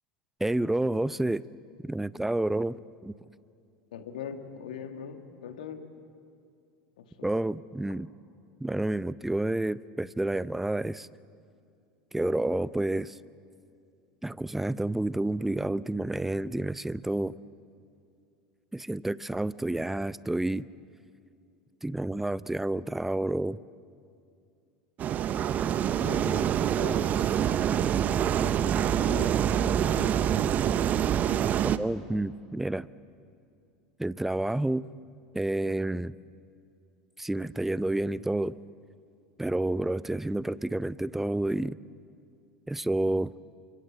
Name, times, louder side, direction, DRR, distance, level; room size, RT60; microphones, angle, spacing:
voice 1, 0.4-1.4 1.8-2.8 3.0-3.1 7.2-8.1 8.6-11.1 12.1-13.2 14.2-17.3 18.7-20.7 21.8-23.6 31.6-32.9 34.0-34.8 35.3-36.1 37.2-38.5 39.4-41.8 42.7-43.3, right 1 dB, 5° right, 19 dB, 0.6 m, -29 dB
voice 2, 3.9-5.9 7.0-7.3 26.0-27.2 28.1-30.2, left 7 dB, 70° left, 6 dB, 2.1 m, -42 dB
sound 1, 25.0-31.8, right 9 dB, 35° right, 0.9 m, -26 dB
29.5 x 25.0 x 7.8 m, 2.4 s
figure-of-eight pair, 80°, 4 cm